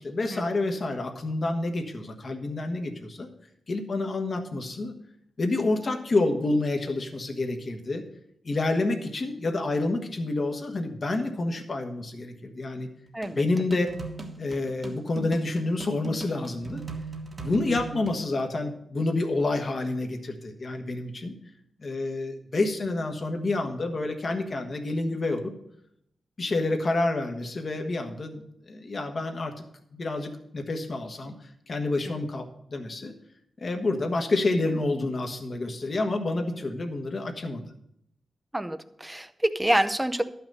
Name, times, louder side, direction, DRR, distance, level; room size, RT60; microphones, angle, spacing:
voice 1, 0.0-3.3 3.7-5.0 5.4-8.0 8.4-12.9 13.3-13.9 14.4-16.8 17.4-21.4 21.8-25.5 26.4-29.5 29.9-31.3 31.7-33.1 33.6-37.6, left 2 dB, 40° left, 5 dB, 1.3 m, -28 dB
voice 2, 13.1-13.4 32.1-32.3 38.5-40.2, right 1 dB, 10° right, 11 dB, 0.6 m, -27 dB
sound 1, 13.2-18.2, right 3 dB, 30° right, 1.3 m, -38 dB
12.0 x 5.9 x 5.6 m, 0.76 s
wide cardioid pair, 130°, 0 cm